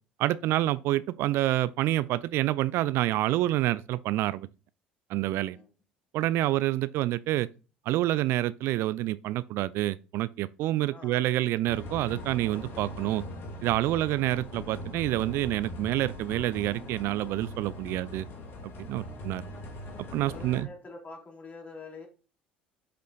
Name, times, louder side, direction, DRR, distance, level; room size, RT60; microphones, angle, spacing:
voice 1, 0.2-4.5 5.1-5.6 6.1-7.5 7.9-13.2 13.6-18.3 18.8-19.4 20.1-20.7, right 15 dB, 60° right, 0.4 m, -28 dB
voice 2, 10.9-11.2 19.0-19.4 20.2-22.1, left 3 dB, 35° left, 3.7 m, -46 dB
sound 1, 11.7-20.6, left 1 dB, 50° left, 2.1 m, -41 dB
7.6 x 6.7 x 2.3 m
hypercardioid pair, 65°, 5 cm